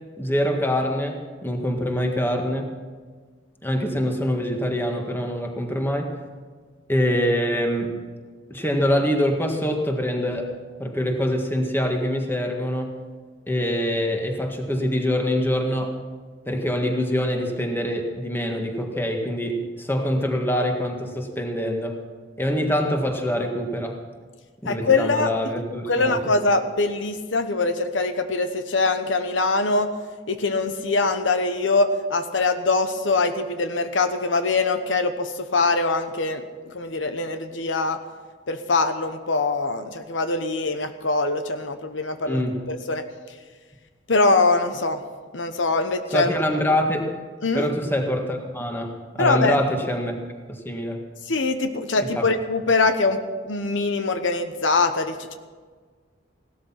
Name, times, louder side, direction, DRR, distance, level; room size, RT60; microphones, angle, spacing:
voice 1, 0.2-2.7 3.6-6.1 6.9-8.0 8.5-13.0 13.5-16.0 16.5-22.0 22.4-24.0 24.6-26.2 42.3-42.7 46.1-47.1 47.5-50.2 50.5-51.0 52.2-52.3, equal, 10° left, 3 dB, 1.7 m, -25 dB
voice 2, 24.6-25.3 25.9-29.9 30.3-38.0 38.5-42.4 42.7-43.0 44.1-45.0 45.3-46.3 47.4-47.7 49.2-49.6 51.3-55.3, left 3 dB, 85° left, 8 dB, 1.0 m, -23 dB
17.0 x 13.0 x 5.9 m, 1.5 s
head